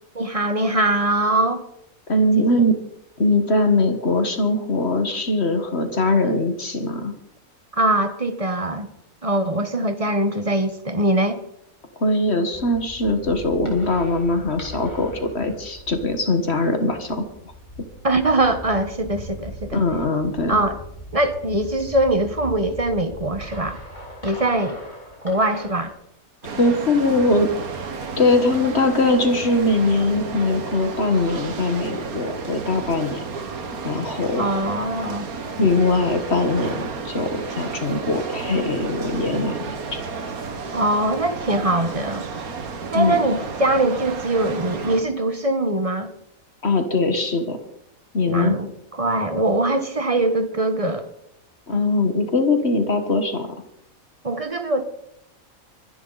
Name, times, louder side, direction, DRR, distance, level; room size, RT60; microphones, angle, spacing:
voice 1, 0.1-1.6 2.4-2.7 7.8-8.9 9.2-11.4 18.0-19.8 20.5-20.8 21.1-23.8 24.2-24.8 25.2-25.9 34.3-35.3 40.7-42.2 42.9-46.1 48.3-51.1 54.2-54.8, right 2 dB, 25° right, 8 dB, 1.3 m, -22 dB
voice 2, 2.1-2.8 3.2-7.1 12.0-17.2 19.7-20.6 26.6-27.5 28.2-33.2 33.8-34.5 35.6-40.0 42.9-43.2 46.6-47.6 48.1-48.6 51.7-53.5, left 2 dB, 50° left, 7 dB, 1.8 m, -21 dB
sound 1, 12.5-25.9, equal, 30° left, 4.5 m, -39 dB
sound 2, 26.4-45.0, right 4 dB, 80° right, 2.0 m, -32 dB
24.0 x 11.0 x 4.1 m, 0.77 s
omnidirectional pair, 1.5 m